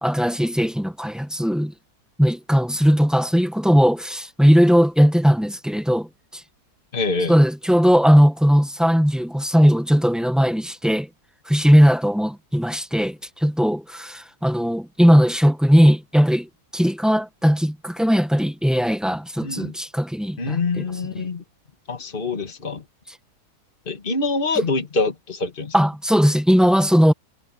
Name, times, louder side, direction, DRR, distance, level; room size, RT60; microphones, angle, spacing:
voice 1, 0.0-1.7 2.2-6.4 7.3-11.1 11.5-20.8 25.7-27.1, equal, ahead, 1.0 m, -18 dB
voice 2, 6.9-7.4 19.4-19.7 20.4-21.4 21.9-22.8 23.9-25.7, left 3 dB, 35° left, 2.3 m, -25 dB
omnidirectional pair, 1.7 m